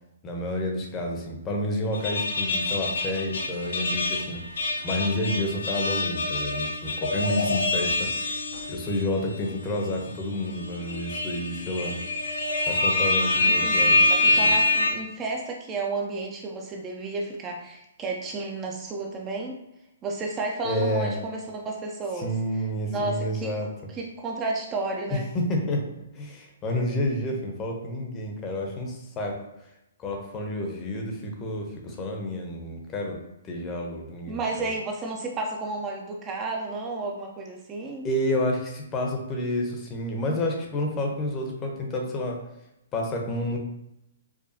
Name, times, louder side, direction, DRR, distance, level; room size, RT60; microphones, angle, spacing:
voice 1, 0.2-8.4 8.7-11.9 12.7-14.0 14.3-14.5 20.6-21.1 22.2-23.7 25.1-29.4 30.0-34.7 38.0-42.4 42.9-43.6, left 1 dB, 20° left, 1 dB, 0.7 m, -30 dB
sound 1, 1.9-9.0 9.4-9.5 10.5-14.9, left 2 dB, 75° left, 0.8 m, -25 dB
voice 2, 13.6-19.6 20.0-22.3 22.9-23.6 23.9-25.3 34.3-38.1, right 3 dB, 20° right, 1 dB, 0.4 m, -32 dB
4.9 x 2.2 x 2.7 m, 0.85 s
hypercardioid pair, 140°, 0 cm